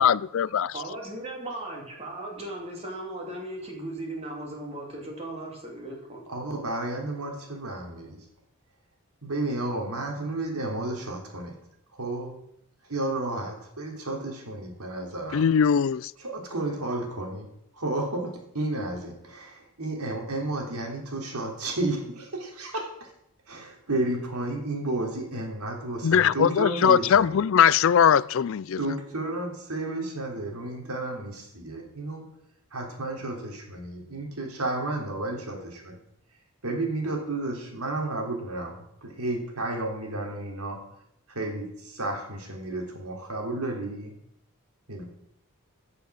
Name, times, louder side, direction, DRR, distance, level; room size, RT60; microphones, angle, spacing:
voice 1, 0.0-0.7 15.3-16.1 26.0-28.8, left 8 dB, 60° left, 0.3 m, -20 dB
voice 2, 0.7-6.2, right 1 dB, 25° right, 2.7 m, -37 dB
voice 3, 6.3-8.2 9.2-11.5 12.0-12.3 12.9-15.4 16.2-17.5 17.7-23.1 23.5-27.4 28.8-32.2 32.7-36.0 36.6-40.8 41.3-44.1 44.9-45.0, right 2 dB, 90° right, 3.5 m, -32 dB
15.5 x 6.9 x 6.4 m
head